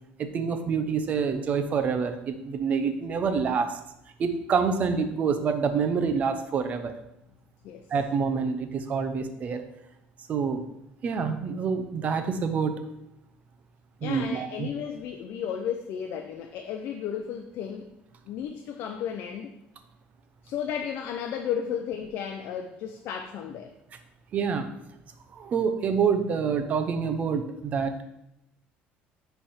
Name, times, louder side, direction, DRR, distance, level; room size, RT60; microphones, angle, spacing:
voice 1, 0.2-3.8 4.2-6.9 7.9-9.6 10.3-10.6 11.0-12.7 14.0-14.7 24.3-24.7 25.3-27.9, right 6 dB, 40° right, 8 dB, 0.7 m, -27 dB
voice 2, 14.0-17.9 18.3-19.6 20.4-23.7, left 8 dB, 65° left, 5 dB, 0.5 m, -33 dB
10.0 x 3.4 x 4.4 m, 0.85 s
cardioid pair, 145°, 4 cm